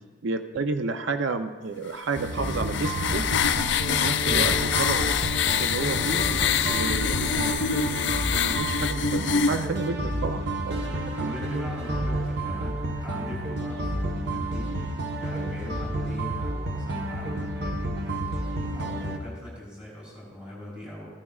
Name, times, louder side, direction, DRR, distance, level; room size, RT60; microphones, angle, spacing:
voice 1, 0.2-3.3 3.9-4.5 4.8-5.1 5.6-6.3 6.7-10.8 11.2-11.3, right 4 dB, 70° right, 8 dB, 0.5 m, -31 dB
sound 1, 2.1-9.7, left 8 dB, 60° left, 0.4 m, -25 dB
sound 2, 2.2-19.2, right 1 dB, 55° right, 1.0 m, -30 dB
voice 2, 4.2-4.5 5.9-6.7 7.1-7.6 10.6-18.3 18.7-21.1, equal, 5° right, -6 dB, 3.4 m, -40 dB
15.0 x 9.8 x 2.4 m, 1.4 s
head